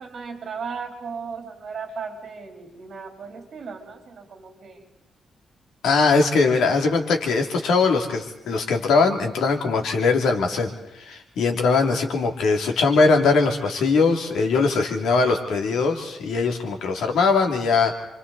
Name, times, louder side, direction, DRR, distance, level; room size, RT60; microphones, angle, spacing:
voice 1, 0.0-4.8 6.4-6.6, right 5 dB, 45° right, 2 dB, 3.8 m, -36 dB
voice 2, 5.8-18.0, left 4 dB, 85° left, 4 dB, 2.9 m, -21 dB
28.5 x 25.5 x 4.2 m, 0.91 s
wide cardioid pair, 160°, 0 cm